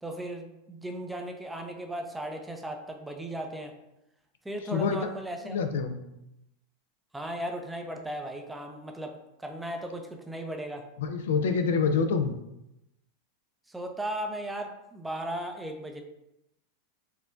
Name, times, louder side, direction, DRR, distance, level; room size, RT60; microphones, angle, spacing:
voice 1, 0.0-3.7 4.4-5.6 7.1-10.9 13.7-16.0, right 1 dB, 5° right, 3 dB, 0.4 m, -36 dB
voice 2, 5.5-6.0 11.0-12.3, left 5 dB, 85° left, 7 dB, 0.4 m, -26 dB
4.4 x 2.2 x 2.5 m, 0.87 s
supercardioid pair, 125°, 0 cm